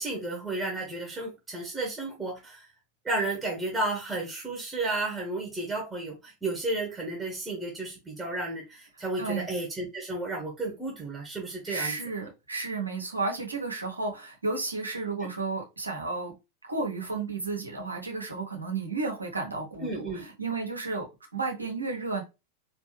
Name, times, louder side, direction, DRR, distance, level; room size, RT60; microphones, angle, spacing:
voice 1, 0.0-2.7 3.0-11.9 19.8-20.3, right 2 dB, 10° right, 1.4 m, -32 dB
voice 2, 9.2-9.5 11.7-16.3 16.6-22.2, right 3 dB, 80° right, 1.3 m, -32 dB
4.1 x 3.3 x 3.2 m
figure-of-eight pair, 90°, 0 cm